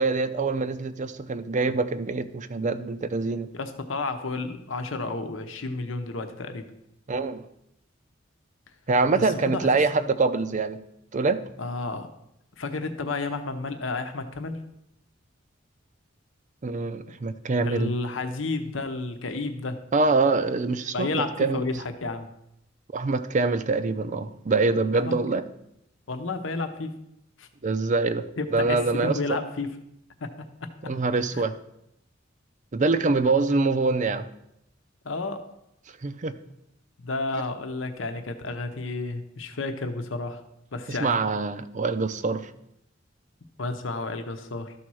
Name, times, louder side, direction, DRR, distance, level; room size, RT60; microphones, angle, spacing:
voice 1, 0.0-3.5 7.1-7.5 8.9-10.8 11.1-11.4 16.6-17.9 19.9-21.6 22.9-25.4 27.6-28.2 28.5-29.4 30.8-31.5 32.7-34.3 36.0-36.3 40.9-42.5, right 3 dB, 40° right, 12 dB, 0.5 m, -25 dB
voice 2, 3.5-6.6 9.4-9.8 11.6-12.1 12.6-14.6 17.6-19.8 20.9-22.3 24.9-25.2 26.1-26.9 27.4-27.5 28.4-29.7 30.2-30.3 30.6-30.7 31.3-31.4 35.0-35.4 37.0-40.4 40.7-41.2 43.6-44.7, left 3 dB, 75° left, 7 dB, 0.9 m, -31 dB
12.5 x 4.3 x 6.2 m, 0.81 s
head